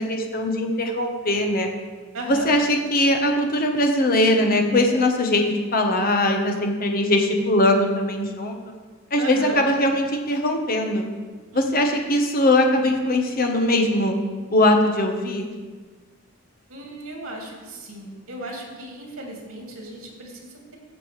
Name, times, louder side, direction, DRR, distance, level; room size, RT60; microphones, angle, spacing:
voice 1, 0.0-1.7 2.3-8.6 9.1-11.0 11.5-14.1 14.5-15.5, left 1 dB, 45° left, 3 dB, 1.1 m, -21 dB
voice 2, 2.1-2.5 9.2-9.6 11.5-11.8 16.7-20.8, right 1 dB, 75° right, -1 dB, 2.5 m, -36 dB
15.5 x 6.8 x 3.3 m, 1.4 s
head